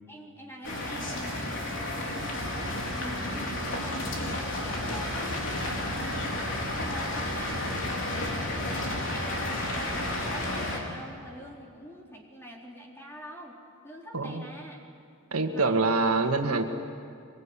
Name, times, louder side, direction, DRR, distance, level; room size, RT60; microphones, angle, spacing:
voice 1, 0.1-7.7 8.1-13.6 13.8-14.8 15.5-15.7, equal, 10° left, -2 dB, 4.0 m, -45 dB
sound 1, 0.6-10.8, left 1 dB, 60° left, 4.3 m, -32 dB
sound 2, 1.1-6.6, left 1 dB, 75° left, 6.0 m, -52 dB
voice 2, 15.3-16.6, right 3 dB, 75° right, 4 dB, 1.8 m, -25 dB
25.0 x 22.5 x 9.9 m, 2.4 s
head